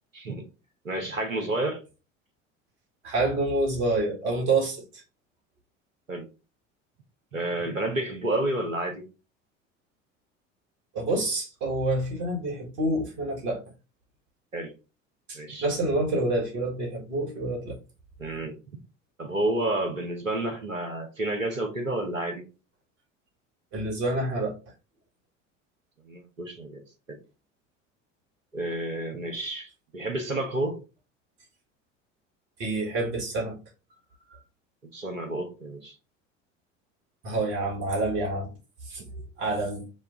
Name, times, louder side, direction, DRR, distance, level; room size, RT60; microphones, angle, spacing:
voice 1, 0.1-0.4 0.8-1.8 6.1-6.3 7.3-9.0 14.5-14.7 15.3-15.7 18.2-18.8 19.2-22.4 26.0-26.8 27.1-27.2 28.5-30.8 34.9-35.9 38.9-39.1, right 1 dB, 90° right, 0.9 m, -30 dB
voice 2, 3.0-5.0 10.9-13.6 15.3-17.8 23.7-24.6 32.6-33.6 34.3-34.4 37.2-38.5 39.4-39.8, right 2 dB, 60° right, 1.8 m, -27 dB
5.1 x 2.2 x 3.7 m
figure-of-eight pair, 65°, 38 cm